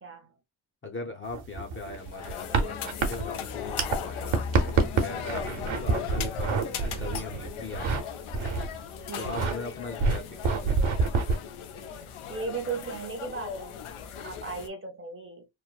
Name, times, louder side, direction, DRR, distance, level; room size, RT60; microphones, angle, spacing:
voice 1, 0.0-0.3 5.7-6.1 9.1-9.4 12.3-13.8 14.2-15.5, right 4 dB, 25° right, 0.7 m, -37 dB
voice 2, 0.8-7.9 9.2-10.8, left 3 dB, 25° left, 0.6 m, -40 dB
sound 1, 1.3-8.0 8.3-8.8 9.2-9.5 10.0-11.4, right 4 dB, 70° right, 1.0 m, -27 dB
sound 2, 1.7-14.7, left 7 dB, 80° left, 0.6 m, -38 dB
3.1 x 2.0 x 2.3 m
wide cardioid pair, 120°, 49 cm